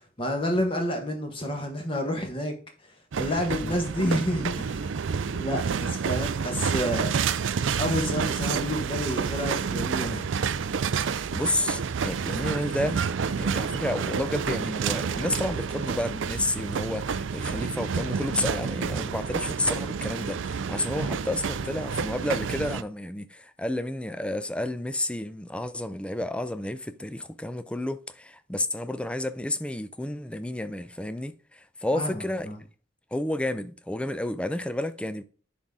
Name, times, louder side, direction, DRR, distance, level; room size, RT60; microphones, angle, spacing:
voice 1, 0.2-2.5 3.2-4.9 5.3-7.1 7.8-10.2 31.9-32.6, equal, 25° left, 1.4 m, -29 dB
sound 1, 3.1-22.8, right 6 dB, 75° right, 0.4 m, -29 dB
voice 2, 11.3-13.0 13.4-32.5 33.1-35.2, left 1 dB, 5° left, 0.4 m, -31 dB
10.0 x 4.0 x 3.7 m
head